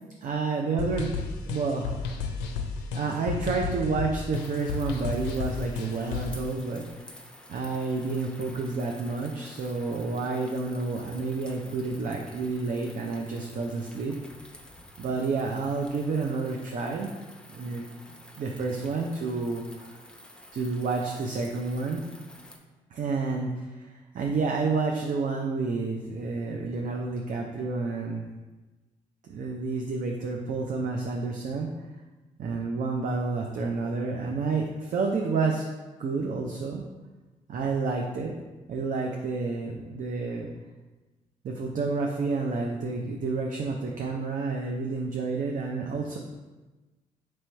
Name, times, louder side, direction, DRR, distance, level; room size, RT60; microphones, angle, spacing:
voice 1, 0.2-1.2 1.5-2.1 2.9-6.8 7.5-14.2 15.0-17.1 17.5-17.8 18.4-20.0 20.5-22.0 22.9-28.3 29.3-31.7 32.4-35.7 36.0-36.8 37.5-38.3 38.7-40.5 41.4-46.2, right 4 dB, 50° right, 1 dB, 0.5 m, -30 dB
sound 1, 0.8-6.4, left 5 dB, 85° left, 0.4 m, -33 dB
sound 2, 4.3-22.6, left 1 dB, 5° left, 0.7 m, -50 dB
3.1 x 3.0 x 4.5 m, 1.2 s
supercardioid pair, 55°, 17 cm